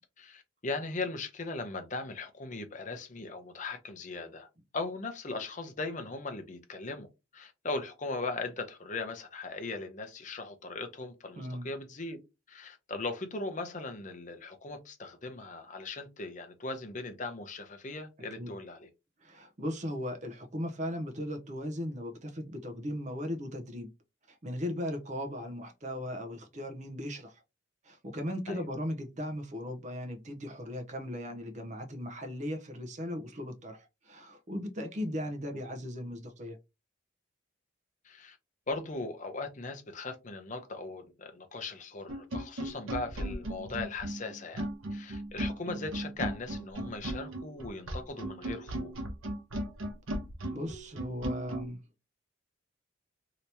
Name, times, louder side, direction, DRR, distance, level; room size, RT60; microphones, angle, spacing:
voice 1, 0.2-4.5 4.7-7.1 7.3-12.2 12.5-18.9 28.5-28.6 38.0-38.4 38.7-48.9, left 3 dB, 40° left, 0.6 m, -39 dB
voice 2, 11.4-11.7 18.4-18.5 19.2-23.9 24.3-27.4 27.8-36.6 50.5-51.8, equal, 35° right, 0.7 m, -37 dB
sound 1, 42.1-51.7, right 1 dB, 90° right, 0.9 m, -37 dB
2.9 x 2.8 x 3.3 m
head